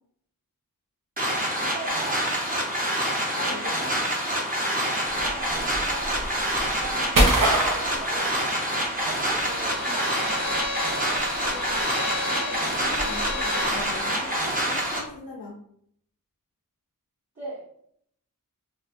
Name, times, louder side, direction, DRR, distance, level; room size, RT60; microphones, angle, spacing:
sound 1, 1.2-15.0, equal, 25° right, 0.8 m, -27 dB
voice 1, 1.5-2.4 5.2-6.4 6.7-7.5 7.9-8.4 9.0-10.5 17.3-17.7, right 3 dB, 55° right, -9 dB, 1.4 m, -39 dB
voice 2, 3.3-4.0 11.4-12.0 12.3-15.6, left 3 dB, 85° left, -3 dB, 0.7 m, -39 dB
sound 2, 5.1-9.0 9.2-15.0, right 1 dB, 70° right, 0.8 m, -28 dB
Bowed string instrument, 9.3-13.8, left 3 dB, 40° left, 0.6 m, -34 dB
3.4 x 2.5 x 2.5 m, 0.66 s
wide cardioid pair, 70°, 34 cm